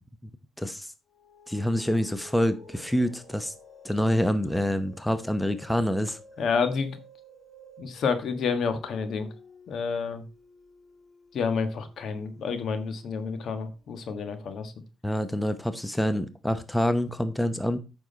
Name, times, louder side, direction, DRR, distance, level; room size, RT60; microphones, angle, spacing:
voice 1, 0.6-0.9 1.5-3.5 3.8-6.2 15.0-17.8, equal, 5° left, 11 dB, 0.9 m, -26 dB
sound 1, 1.1-13.9, left 1 dB, 35° left, 2.7 m, -53 dB
voice 2, 6.4-7.0 7.8-9.3 9.7-10.2 11.3-14.7, left 5 dB, 65° left, 10 dB, 1.4 m, -29 dB
8.9 x 6.2 x 4.0 m, 0.29 s
cardioid pair, 90°, 0 cm